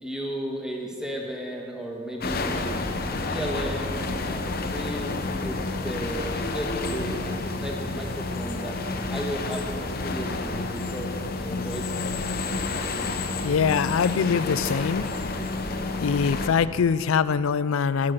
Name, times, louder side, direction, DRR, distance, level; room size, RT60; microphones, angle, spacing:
voice 1, 0.0-2.8 3.2-5.1 5.4-8.8 9.1-12.0, right 1 dB, 5° right, -1 dB, 1.3 m, -34 dB
sound 1, 2.2-16.5, left 3 dB, 45° left, 0.8 m, -30 dB
voice 2, 13.4-15.1 16.0-18.1, left 6 dB, 75° left, 16 dB, 0.4 m, -23 dB
11.0 x 9.7 x 6.5 m, 2.3 s
head